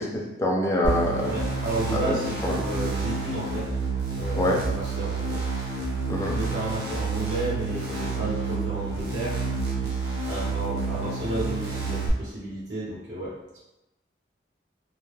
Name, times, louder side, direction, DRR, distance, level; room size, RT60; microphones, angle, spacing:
voice 1, 0.0-1.3 2.1-2.2 2.4-2.5 4.4-4.6 6.1-6.3, left 1 dB, 15° left, -2 dB, 0.3 m, -25 dB
sound 1, 0.8-12.1, right 4 dB, 65° right, 0.6 m, -29 dB
voice 2, 1.2-3.7 4.1-5.4 6.3-9.4 9.8-9.9 10.3-13.4, right 1 dB, 85° right, -8 dB, 1.0 m, -32 dB
2.2 x 2.0 x 3.0 m, 0.95 s
head